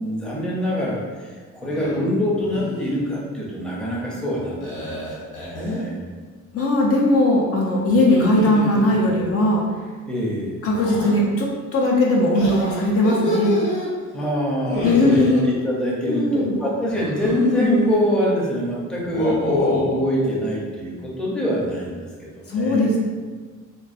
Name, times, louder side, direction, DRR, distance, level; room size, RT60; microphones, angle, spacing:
voice 1, 0.0-5.0 5.4-6.0 10.1-10.6 14.1-22.9, equal, 5° left, -5 dB, 0.6 m, -24 dB
sound 1, 1.7-2.0 2.4-2.9 4.6-5.9 7.9-9.3 10.8-11.1 12.3-13.9 14.6-15.4 16.9-18.0 19.0-20.0, left 1 dB, 90° left, 0.8 m, -27 dB
voice 2, 6.5-9.6 10.6-13.5 14.8-15.4 16.1-16.6 22.5-23.0, left 1 dB, 50° left, -2 dB, 0.5 m, -19 dB
2.2 x 2.2 x 2.5 m, 1.5 s
cardioid pair, 90°, 30 cm